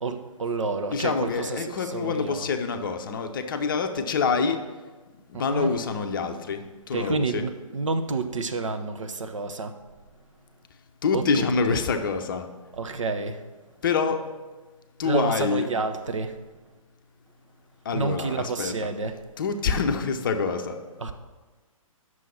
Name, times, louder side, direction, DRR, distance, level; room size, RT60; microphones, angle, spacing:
voice 1, 0.0-2.5 5.5-5.7 6.9-9.7 11.1-11.8 12.8-13.4 15.0-16.4 17.9-19.1 21.0-21.1, right 3 dB, 60° right, 7 dB, 0.7 m, -29 dB
voice 2, 0.9-4.6 5.3-7.4 11.0-12.5 13.8-14.2 15.0-15.7 17.8-18.7 19.4-20.8, left 5 dB, 40° left, 7 dB, 0.6 m, -26 dB
9.1 x 6.2 x 4.2 m, 1.3 s
figure-of-eight pair, 130°, 18 cm